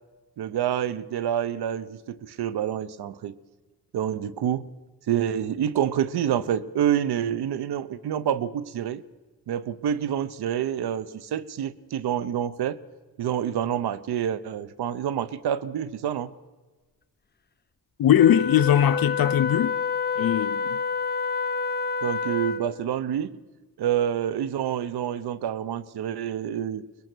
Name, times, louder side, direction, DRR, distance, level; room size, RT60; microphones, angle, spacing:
voice 1, 0.4-3.4 3.9-4.7 5.1-9.0 9.5-12.8 13.2-16.3 22.0-23.3 23.8-26.8, right 9 dB, 80° right, 0.9 m, -27 dB
voice 2, 18.0-19.7 20.2-20.8, left 10 dB, 65° left, 0.7 m, -20 dB
Wind instrument woodwind instrument, 18.2-22.8, left 5 dB, 25° left, 0.7 m, -28 dB
23.0 x 20.5 x 6.2 m
cardioid pair, 65°, 38 cm